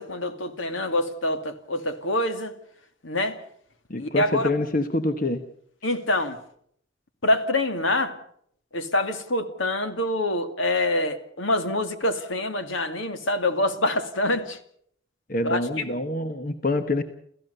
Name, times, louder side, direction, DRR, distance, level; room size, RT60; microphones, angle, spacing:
voice 1, 0.0-2.5 3.0-3.4 4.0-4.5 5.8-6.4 7.2-8.2 8.7-14.6 15.4-15.6, left 1 dB, 75° left, 2.3 m, -25 dB
voice 2, 3.9-5.4 15.3-17.0, left 2 dB, 45° left, 1.2 m, -26 dB
28.5 x 15.0 x 6.8 m
head